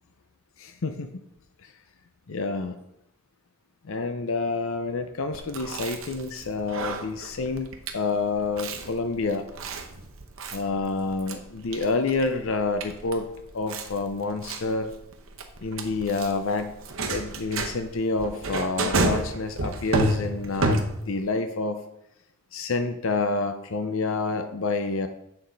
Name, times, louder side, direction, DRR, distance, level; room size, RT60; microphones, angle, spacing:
voice 1, 0.6-1.2 1.6-1.7 2.3-2.8 3.8-9.4 10.5-13.3 13.5-14.9 15.6-16.8 17.0-21.8 22.5-25.1, left 3 dB, 65° left, 8 dB, 0.6 m, -28 dB
Chewing mastication, 5.3-21.3, right 2 dB, 65° right, 0.9 m, -31 dB
7.5 x 6.4 x 4.0 m, 0.79 s
head